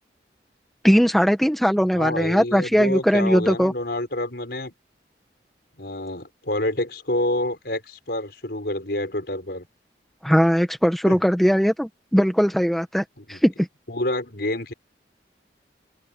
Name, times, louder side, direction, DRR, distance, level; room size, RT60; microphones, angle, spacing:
voice 1, 0.8-3.7 10.2-13.0 13.3-13.7, equal, ahead, 1.2 m, -19 dB
voice 2, 1.9-4.7 5.8-9.7 11.1-11.2 13.2-13.4 13.9-14.7, left 1 dB, 60° left, 5.6 m, -28 dB
open air
head